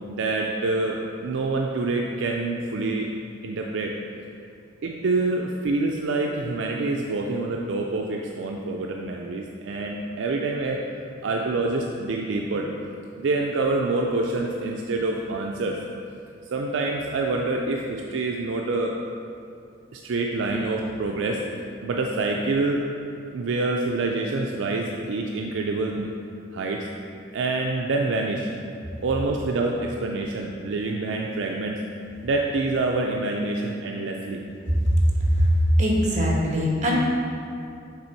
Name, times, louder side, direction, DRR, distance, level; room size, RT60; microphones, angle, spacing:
voice 1, 0.1-1.0 1.2-3.1 3.4-4.0 4.8-10.8 11.2-12.7 13.2-15.8 16.5-19.0 19.9-21.4 21.8-22.8 23.3-26.1 26.5-26.9 27.3-28.5 29.0-31.8 32.2-34.4, right 3 dB, 70° right, 0 dB, 0.4 m, -26 dB
voice 2, 34.8-35.5 35.8-37.0, equal, 40° right, -3 dB, 1.2 m, -21 dB
6.7 x 3.8 x 4.5 m, 2.5 s
head